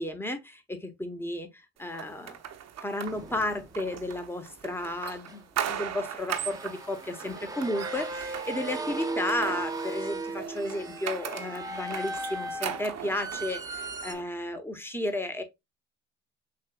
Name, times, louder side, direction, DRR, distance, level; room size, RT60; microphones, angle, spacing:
voice 1, 0.0-2.4 2.8-15.4, left 1 dB, 5° left, 1.0 m, -33 dB
sound 1, 1.9-14.2, right 9 dB, 55° right, 0.8 m, -39 dB
sound 2, 3.1-3.8 5.3-5.4 6.3-14.1, right 2 dB, 10° right, 0.8 m, -37 dB
6.4 x 2.4 x 2.3 m
supercardioid pair, 65°, 31 cm